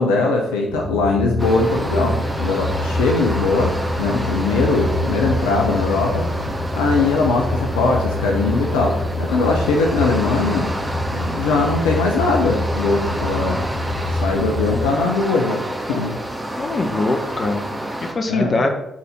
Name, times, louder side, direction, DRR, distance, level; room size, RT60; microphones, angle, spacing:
voice 1, 0.0-6.3 6.7-10.7 11.1-13.7 14.1-16.2 18.3-18.6, left 3 dB, 80° left, 0 dB, 0.9 m, -20 dB
sound 1, 0.7-14.9, left 1 dB, 60° left, 1.6 m, -26 dB
sound 2, 1.4-18.1, right 1 dB, 15° right, 1.8 m, -29 dB
sound 3, 4.2-17.7, right 2 dB, 50° right, 3.5 m, -41 dB
voice 2, 16.6-18.7, left 2 dB, 45° left, 4 dB, 1.4 m, -23 dB
8.9 x 4.2 x 5.7 m, 0.87 s
hypercardioid pair, 40°, 0 cm